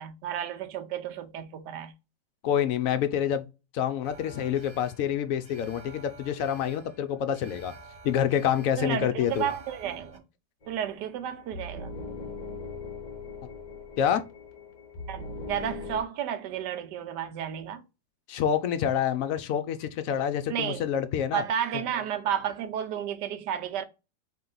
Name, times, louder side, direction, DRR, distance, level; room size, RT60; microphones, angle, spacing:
voice 1, 0.0-1.9 8.8-10.2 10.7-11.9 15.1-17.8 20.5-20.8 21.3-23.8, right 9 dB, 85° right, 1.3 m, -32 dB
voice 2, 2.4-3.5 3.7-7.7 8.0-9.5 14.0-14.2 18.3-21.4, left 9 dB, 70° left, 0.8 m, -27 dB
Alarm, 4.0-10.2, right 3 dB, 45° right, 0.4 m, -50 dB
sound 1, 10.6-16.0, left 3 dB, 35° left, 0.8 m, -40 dB
4.5 x 3.1 x 3.8 m
omnidirectional pair, 1.8 m